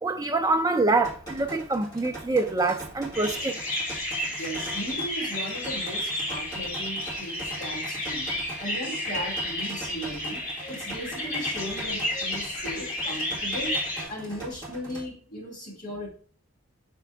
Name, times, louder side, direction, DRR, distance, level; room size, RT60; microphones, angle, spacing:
voice 1, 0.0-3.6, right 3 dB, 15° right, 0.5 m, -25 dB
sound 1, 1.0-15.0, right 2 dB, 15° left, 1.7 m, -42 dB
sound 2, 3.1-14.0, left 1 dB, 65° left, 2.7 m, -32 dB
voice 2, 4.3-8.3 8.6-13.8 14.1-16.1, equal, 40° left, 3.0 m, -37 dB
6.0 x 4.6 x 3.5 m
head